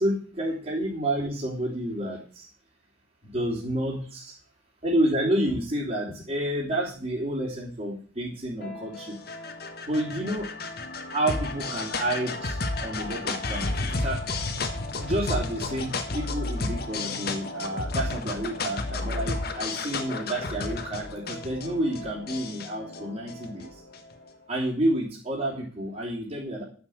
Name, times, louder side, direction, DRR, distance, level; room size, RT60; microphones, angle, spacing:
voice 1, 0.0-2.5 3.2-4.3 4.8-9.2 9.8-10.5 11.1-14.2 15.0-23.8 24.5-26.6, right 1 dB, 35° right, -8 dB, 3.4 m, -29 dB
sound 1, 8.6-24.1, left 2 dB, 50° left, 1.4 m, -32 dB
11.0 x 7.1 x 7.9 m, 0.44 s
head